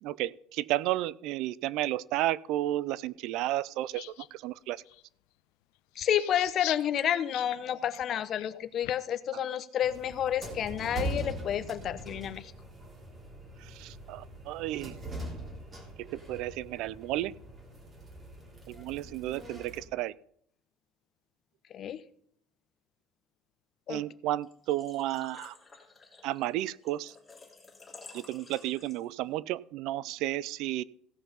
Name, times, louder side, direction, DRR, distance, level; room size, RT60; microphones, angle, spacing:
voice 1, 0.0-4.1 4.3-4.8 13.6-15.0 16.0-17.3 18.7-20.1 23.9-25.6 26.2-27.2 28.1-30.8, right 15 dB, 65° right, 21 dB, 0.4 m, -32 dB
sound 1, 3.9-4.3 4.9-5.0 6.0-9.2, left 22 dB, 80° left, 0.4 m, -42 dB
voice 2, 6.0-12.5 21.7-22.0 23.9-24.0, left 10 dB, 40° left, 13 dB, 0.7 m, -30 dB
sound 2, 9.8-19.8, right 1 dB, 25° right, 3.0 m, -42 dB
Engine / Trickle dribble / Fill (with liquid), 24.4-29.3, left 3 dB, 15° left, 3.2 m, -52 dB
16.0 x 5.6 x 5.5 m, 0.66 s
cardioid pair, 145°, 0 cm